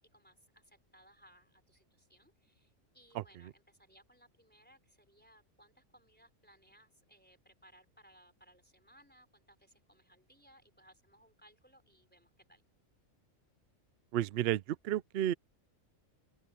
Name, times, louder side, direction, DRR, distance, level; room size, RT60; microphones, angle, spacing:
voice 1, 0.1-12.6, right 1 dB, 5° left, 4.0 m, -64 dB
voice 2, 14.1-15.3, right 12 dB, 65° right, 0.6 m, -32 dB
open air
omnidirectional pair, 1.4 m